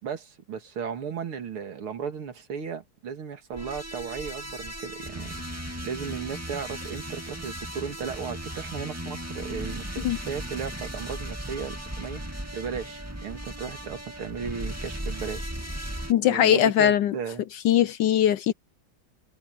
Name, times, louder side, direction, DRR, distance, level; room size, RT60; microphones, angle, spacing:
voice 1, 0.0-5.4 5.8-15.5 16.2-17.4, right 6 dB, 90° right, 3.0 m, -35 dB
sound 1, 3.5-16.1, right 1 dB, 5° right, 2.2 m, -36 dB
voice 2, 16.1-17.1 17.6-18.5, left 10 dB, 75° left, 1.0 m, -20 dB
omnidirectional pair, 2.3 m